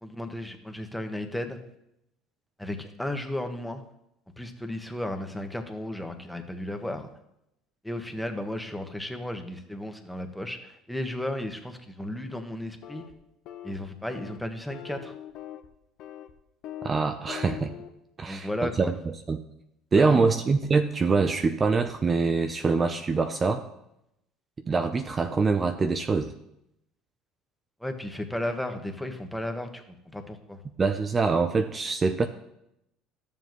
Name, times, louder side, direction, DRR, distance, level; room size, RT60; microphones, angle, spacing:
voice 1, 0.0-1.6 2.6-3.8 4.4-7.1 7.8-13.0 13.6-15.1 18.3-18.9 20.0-20.3 27.8-30.6, left 1 dB, 5° left, 6 dB, 1.3 m, -34 dB
sound 1, 12.8-13.1 13.5-13.8 14.1-14.4 14.7-15.7 16.0-16.3 16.6-16.9 17.3-17.9, left 11 dB, 60° left, 0.9 m, -41 dB
voice 2, 16.8-17.7 18.2-18.5 18.8-18.9 19.3-19.4 19.9-23.7 24.7-26.3 30.8-32.3, right 4 dB, 30° right, 8 dB, 0.7 m, -24 dB
13.0 x 7.2 x 3.1 m, 0.82 s
hypercardioid pair, 75°, 0 cm